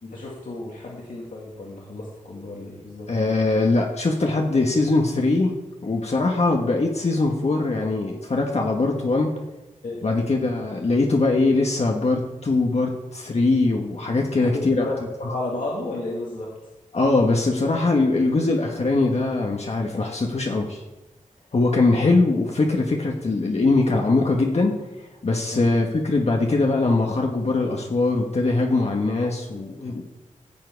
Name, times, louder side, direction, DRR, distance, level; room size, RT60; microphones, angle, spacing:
voice 1, 0.0-3.1 9.8-10.3 14.4-16.5 25.5-25.8, left 2 dB, 80° left, -4 dB, 2.3 m, -32 dB
voice 2, 3.1-5.5 5.8-9.3 10.0-14.8 16.9-20.8 21.5-24.7 25.2-30.0, left 3 dB, 55° left, 0 dB, 1.4 m, -21 dB
15.0 x 7.7 x 4.6 m, 1.0 s
wide cardioid pair, 105°, 13 cm